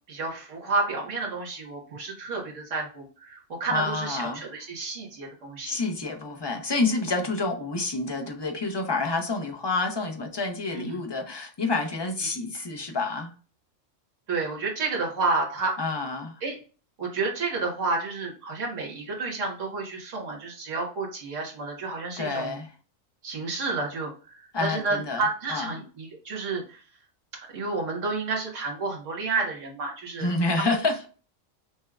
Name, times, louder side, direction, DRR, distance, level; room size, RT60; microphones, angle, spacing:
voice 1, 0.1-5.7 10.7-11.0 14.3-15.8 16.4-16.6 17.0-22.6 23.2-26.8 27.5-30.3 30.6-30.8, right 3 dB, 80° right, 0 dB, 1.7 m, -30 dB
voice 2, 3.7-4.4 4.8-4.9 5.7-13.3 15.8-16.4 22.2-22.7 24.5-25.2 25.5-25.7 30.2-31.1, left 3 dB, 30° left, 3 dB, 0.5 m, -28 dB
6.1 x 2.2 x 2.3 m, 0.38 s
omnidirectional pair, 1.3 m